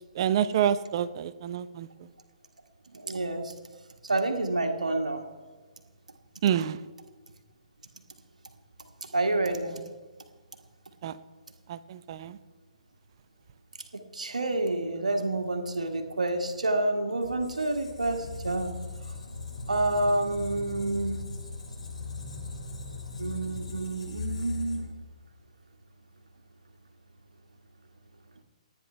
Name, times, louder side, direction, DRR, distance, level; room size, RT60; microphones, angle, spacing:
voice 1, 0.2-1.9 6.4-6.8 11.0-11.1 11.7-12.3, right 9 dB, 40° right, 15 dB, 0.6 m, -27 dB
voice 2, 2.9-3.5 4.0-5.2 9.1-9.8 13.9-18.8 19.7-21.2 23.2-24.9, right 2 dB, 80° right, 5 dB, 1.7 m, -28 dB
Squeak, 17.2-25.1, left 4 dB, 70° left, 5.9 m, -39 dB
29.0 x 9.7 x 3.4 m, 1.3 s
figure-of-eight pair, 135°, 4 cm